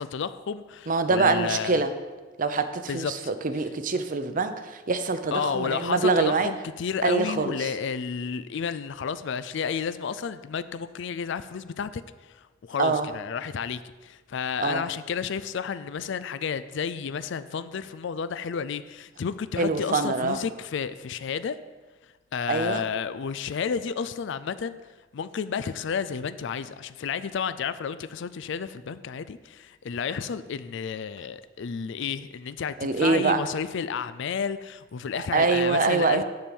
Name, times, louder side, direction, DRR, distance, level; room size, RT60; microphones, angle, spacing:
voice 1, 0.0-1.8 2.9-3.1 5.3-21.6 22.3-24.8 25.1-36.2, left 6 dB, 70° left, 14 dB, 0.4 m, -31 dB
voice 2, 0.9-1.9 2.4-6.5 7.0-7.7 12.8-13.1 14.6-14.8 19.6-20.4 22.5-22.8 32.8-33.4 35.3-36.2, right 4 dB, 45° right, 9 dB, 0.7 m, -24 dB
10.5 x 4.5 x 7.0 m, 1.3 s
head